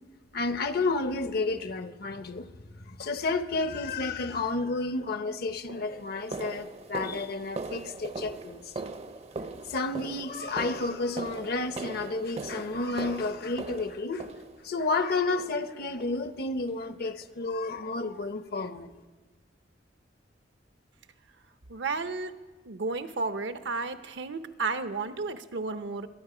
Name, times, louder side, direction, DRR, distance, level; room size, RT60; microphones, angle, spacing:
voice 1, 0.3-2.5 2.9-8.7 9.7-14.3 14.6-18.9, left 3 dB, 60° left, 0.8 m, -31 dB
sound 1, 5.0-5.1 5.7-14.9 15.4-15.7 16.0-16.2 16.6-16.8 17.2-17.3 17.8-17.9, right 3 dB, 35° right, 0.6 m, -40 dB
voice 2, 21.7-22.3 22.7-26.1, right 4 dB, 70° right, 0.8 m, -32 dB
23.5 x 9.1 x 5.0 m
head